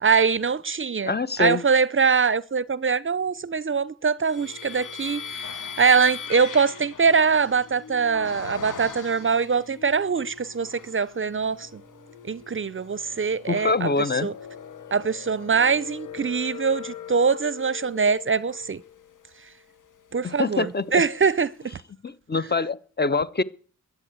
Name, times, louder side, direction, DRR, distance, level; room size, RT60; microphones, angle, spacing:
voice 1, 0.0-11.8 12.3-13.9 14.2-14.3 14.9-18.8 20.1-21.5, right 5 dB, 40° right, 0.6 m, -23 dB
voice 2, 1.0-1.6 13.5-14.3 20.2-21.0 22.0-23.4, left 4 dB, 30° left, 1.1 m, -25 dB
sound 1, 4.2-9.7 10.3-11.1 11.6-20.8, left 7 dB, 65° left, 1.6 m, -41 dB
sound 2, 4.3-16.2, left 4 dB, 90° left, 6.2 m, -48 dB
13.5 x 9.2 x 8.3 m
cardioid pair, 60°, 33 cm